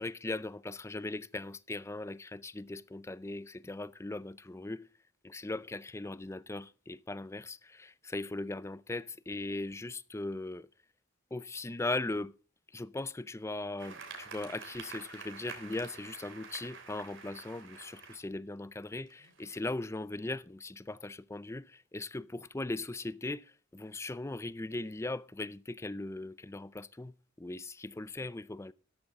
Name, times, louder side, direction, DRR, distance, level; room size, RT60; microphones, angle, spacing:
voice 1, 0.0-4.9 5.2-10.7 11.3-12.3 12.7-28.7, left 2 dB, 15° left, 0.4 m, -39 dB
sound 1, 13.8-18.2 18.9-19.7, right 5 dB, 85° right, 3.3 m, -48 dB
13.5 x 11.5 x 3.6 m
head